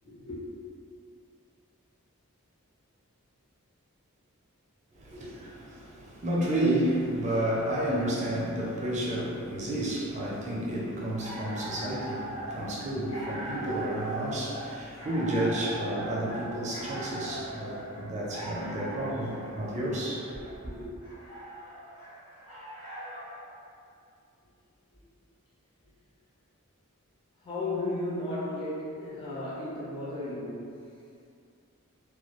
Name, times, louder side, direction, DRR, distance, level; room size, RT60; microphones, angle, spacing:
voice 1, 0.0-0.5 24.9-25.0 27.4-30.8, left 2 dB, 25° left, -10 dB, 0.5 m, -34 dB
voice 2, 4.9-20.5 20.8-20.9, right 1 dB, 35° right, -5 dB, 0.4 m, -31 dB
sound 1, 11.0-23.4, right 1 dB, 65° left, 1.0 m, -40 dB
2.2 x 2.0 x 2.9 m, 2.5 s
head